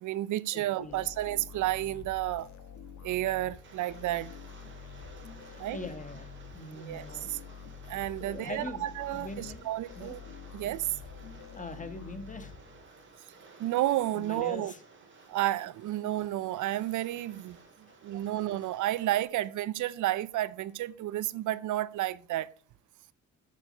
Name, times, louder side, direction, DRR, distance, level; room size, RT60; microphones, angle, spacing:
voice 1, 0.0-2.5 3.0-4.3 5.6-5.8 6.7-7.4 7.9-10.2 10.5-10.9 13.6-14.7 15.3-17.6 18.0-22.5, right 14 dB, 80° right, 0.6 m, -31 dB
voice 2, 0.5-1.1 5.5-7.4 8.2-9.7 9.9-10.1 11.5-12.5 14.1-14.8 17.9-18.0, left 2 dB, 25° left, 1.7 m, -42 dB
sound 1, 0.9-13.1, left 7 dB, 65° left, 1.4 m, -48 dB
Rain, 3.5-19.2, right 4 dB, 40° right, 2.9 m, -55 dB
7.9 x 7.3 x 5.5 m
cardioid pair, 90°, 30 cm